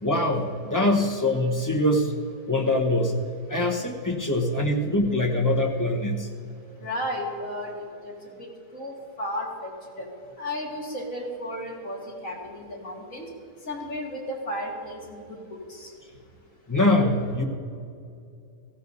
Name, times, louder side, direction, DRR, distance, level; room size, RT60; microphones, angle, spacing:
voice 1, 0.0-2.1 2.5-3.2 3.5-6.3 16.7-17.4, left 1 dB, 15° left, 0 dB, 1.0 m, -23 dB
voice 2, 6.8-9.7 10.0-10.1 10.4-13.3 13.7-15.4 15.7-15.9, left 1 dB, 65° left, -2 dB, 2.3 m, -34 dB
17.0 x 15.5 x 2.7 m, 2.5 s
omnidirectional pair, 1.5 m